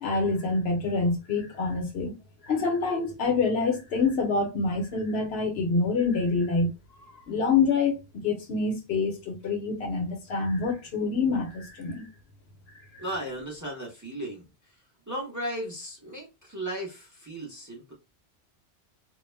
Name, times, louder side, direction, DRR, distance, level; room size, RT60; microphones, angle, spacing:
voice 1, 0.0-2.1 2.4-6.7 7.1-12.1 12.9-13.0, left 4 dB, 70° left, 0.9 m, -26 dB
voice 2, 13.0-17.9, right 1 dB, 20° right, 0.6 m, -36 dB
2.3 x 2.0 x 3.1 m
omnidirectional pair, 1.2 m